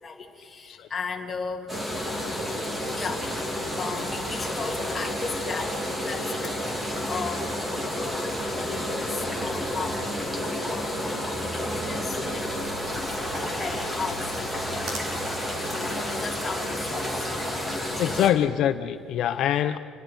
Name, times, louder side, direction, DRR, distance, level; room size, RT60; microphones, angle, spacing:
voice 1, 0.0-1.8 2.9-3.3 3.8-10.1 10.3-12.5 13.0-15.2 15.5-17.4 17.8-18.2, left 4 dB, 20° left, 1 dB, 2.5 m, -37 dB
sound 1, 1.7-18.3, equal, 10° right, 3.2 m, -30 dB
sound 2, 12.2-18.3, right 2 dB, 45° right, 5.2 m, -45 dB
voice 2, 18.0-19.8, left 10 dB, 50° left, 9 dB, 0.6 m, -24 dB
28.5 x 20.5 x 5.5 m, 2.4 s
cardioid pair, 160°, 0 cm